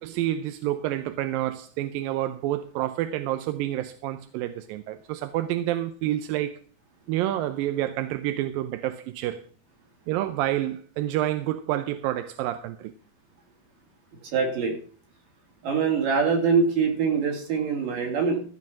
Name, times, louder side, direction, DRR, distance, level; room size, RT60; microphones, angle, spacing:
voice 1, 0.0-6.6 7.1-9.4 10.1-12.9, right 13 dB, 80° right, 2.3 m, -28 dB
voice 2, 14.3-14.8 15.6-18.4, right 5 dB, 65° right, 4.5 m, -23 dB
14.5 x 5.5 x 7.4 m
omnidirectional pair, 4.3 m